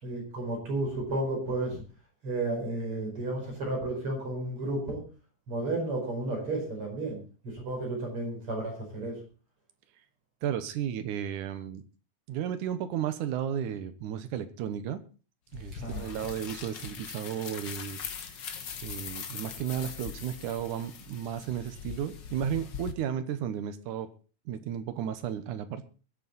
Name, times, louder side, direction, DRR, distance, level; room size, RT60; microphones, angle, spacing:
voice 1, 0.0-1.8 2.2-5.0 5.5-9.2 15.7-16.3, right 2 dB, 40° right, 0 dB, 5.7 m, -32 dB
voice 2, 10.4-11.8 12.3-15.0 15.5-18.5 18.8-24.1 24.5-25.8, right 9 dB, 70° right, 11 dB, 2.4 m, -34 dB
sound 1, 15.5-22.9, left 7 dB, 75° left, 1.0 m, -41 dB
23.0 x 8.5 x 4.0 m, 0.36 s
omnidirectional pair, 4.0 m